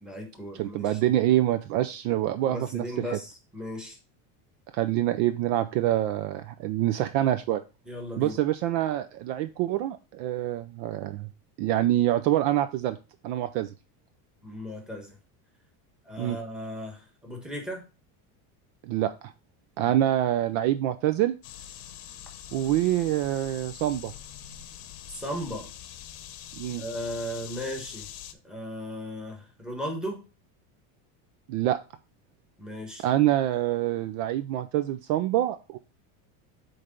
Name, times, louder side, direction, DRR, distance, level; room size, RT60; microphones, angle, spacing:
voice 1, 0.0-1.0 2.4-4.0 7.9-8.4 14.4-15.2 16.0-17.9 19.8-19.9 25.1-25.7 26.8-28.1 28.4-30.2 32.6-33.0, equal, ahead, 1 dB, 1.2 m, -36 dB
voice 2, 0.5-3.2 4.7-7.6 8.2-11.3 11.6-13.0 13.2-13.7 16.2-16.4 18.8-19.3 19.8-21.3 22.5-24.1 26.5-26.8 31.5-31.8 33.0-35.8, right 13 dB, 55° right, 11 dB, 0.5 m, -26 dB
sound 1, 21.4-28.3, left 11 dB, 80° left, 0.9 m, -44 dB
7.9 x 3.3 x 3.7 m, 0.31 s
cardioid pair, 165°, 44 cm